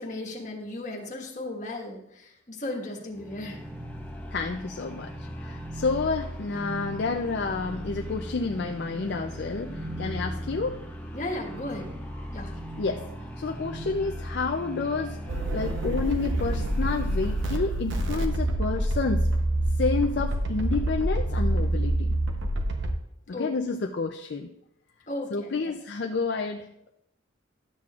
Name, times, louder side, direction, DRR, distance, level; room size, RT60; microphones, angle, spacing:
voice 1, 0.0-3.6 11.1-11.9 12.3-12.5 23.3-23.5 25.1-25.7, left 1 dB, 40° left, -1 dB, 1.4 m, -35 dB
sound 1, 3.1-17.9, equal, 10° left, 0.7 m, -38 dB
voice 2, 4.3-5.1 5.4-10.8 12.8-13.0 13.4-15.2 15.5-19.3 19.8-22.1 23.3-24.5 25.3-26.9, left 4 dB, 55° left, 2 dB, 0.4 m, -29 dB
sound 2, 15.3-22.9, right 1 dB, 70° right, 0.8 m, -26 dB
12.0 x 7.5 x 2.4 m, 0.81 s
head